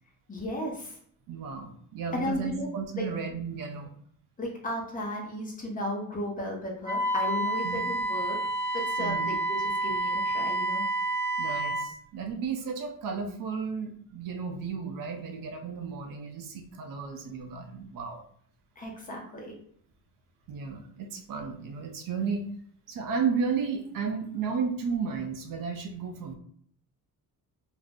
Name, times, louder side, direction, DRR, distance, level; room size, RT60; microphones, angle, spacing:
voice 1, 0.3-1.0 2.1-2.7 3.0-3.1 4.4-8.4 8.7-10.8 18.8-19.5, left 1 dB, 25° left, -1 dB, 0.6 m, -34 dB
voice 2, 1.3-3.9 7.6-7.8 9.0-9.3 11.4-18.2 20.5-22.5 22.9-26.3, right 5 dB, 65° right, 4 dB, 0.5 m, -33 dB
Wind instrument woodwind instrument, 6.8-11.9, right 1 dB, 10° right, 0.9 m, -29 dB
2.5 x 2.0 x 3.5 m, 0.63 s
cardioid pair, 150°, 35 cm